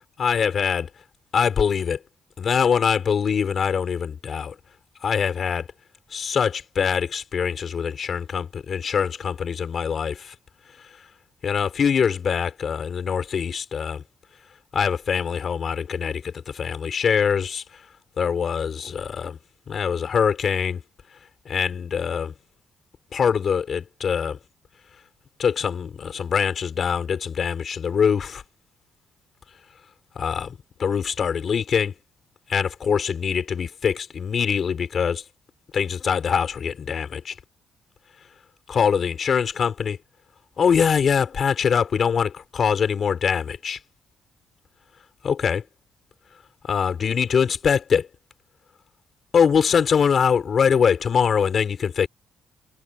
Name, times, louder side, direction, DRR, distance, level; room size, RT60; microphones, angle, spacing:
voice 1, 0.2-0.9 1.3-2.0 2.4-4.5 5.0-5.7 6.1-10.3 11.4-14.0 14.7-17.6 18.2-19.4 19.7-20.8 21.5-22.3 23.1-24.4 25.4-28.4 30.2-31.9 32.5-35.2 35.7-37.3 38.7-40.0 40.6-43.8 45.2-45.6 46.7-48.1 49.3-52.1, left 7 dB, 50° left, 5.4 m, -23 dB
cardioid pair, 90°, 0 cm